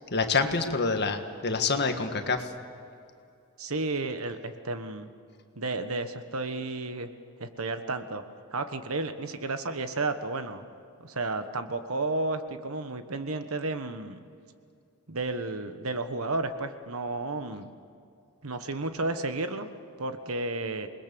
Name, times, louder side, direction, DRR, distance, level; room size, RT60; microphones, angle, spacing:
voice 1, 0.0-2.5, left 4 dB, 50° left, 6 dB, 1.7 m, -27 dB
voice 2, 3.6-5.1 5.5-7.1 7.4-8.2 8.5-10.6 11.0-14.2 15.1-17.7 18.4-19.7 20.0-20.9, right 2 dB, 70° right, 9 dB, 1.4 m, -32 dB
27.5 x 20.5 x 7.0 m, 2.5 s
head